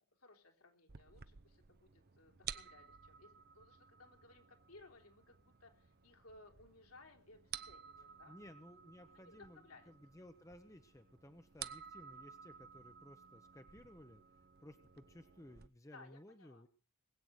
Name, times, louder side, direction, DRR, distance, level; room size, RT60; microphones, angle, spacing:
voice 1, 0.2-8.4 9.1-9.9 15.9-16.6, left 2 dB, 70° left, 2 dB, 3.6 m, -61 dB
sound 1, 0.9-15.7, right 9 dB, 45° right, 0.7 m, -54 dB
voice 2, 8.2-14.2 14.6-16.7, left 1 dB, 15° left, 8 dB, 0.9 m, -58 dB
21.0 x 8.8 x 6.5 m, 0.41 s
head